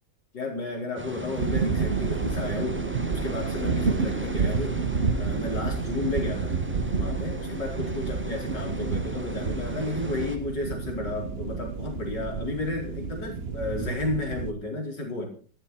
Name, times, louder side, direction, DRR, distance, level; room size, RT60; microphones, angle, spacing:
voice 1, 0.3-4.9 5.2-6.6 6.9-15.3, left 2 dB, 70° left, 0 dB, 5.0 m, -32 dB
sound 1, 1.0-10.4, right 1 dB, 10° right, 0.9 m, -39 dB
sound 2, 1.4-14.5, right 4 dB, 40° right, 1.0 m, -29 dB
13.5 x 12.5 x 4.2 m, 0.41 s
omnidirectional pair, 2.0 m